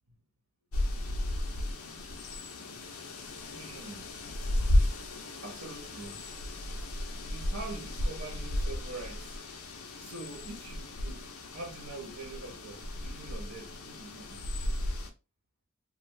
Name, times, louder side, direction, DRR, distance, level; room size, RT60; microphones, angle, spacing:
sound 1, 0.7-15.1, left 1 dB, 85° left, 0.6 m, -34 dB
voice 1, 3.6-4.1 5.4-6.2 7.3-9.4 10.0-14.5, right 2 dB, 85° right, 1.0 m, -44 dB
2.4 x 2.4 x 3.2 m
head